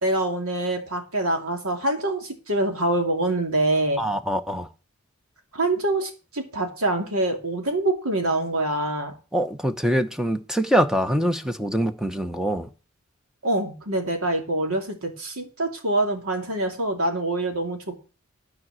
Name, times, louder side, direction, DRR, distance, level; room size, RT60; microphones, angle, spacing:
voice 1, 0.0-4.0 5.5-9.1 13.4-18.0, right 2 dB, 75° right, 2.6 m, -25 dB
voice 2, 4.0-4.7 9.3-12.7, equal, 5° right, 0.9 m, -24 dB
13.0 x 5.0 x 7.7 m
head